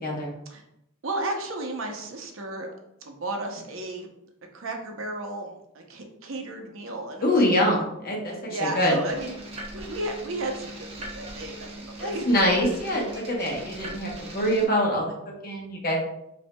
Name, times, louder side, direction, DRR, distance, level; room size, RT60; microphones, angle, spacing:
voice 1, 0.0-0.3 7.2-9.0 12.0-15.1 15.4-16.0, equal, 45° left, -1 dB, 1.0 m, -24 dB
voice 2, 1.0-2.7 3.0-4.1 4.5-5.5 5.7-7.4 8.3-9.4 9.7-12.3, right 2 dB, 65° right, 3 dB, 0.7 m, -33 dB
sound 1, 9.1-14.6, right 1 dB, 25° right, 0.9 m, -40 dB
5.7 x 2.7 x 2.2 m, 0.81 s
head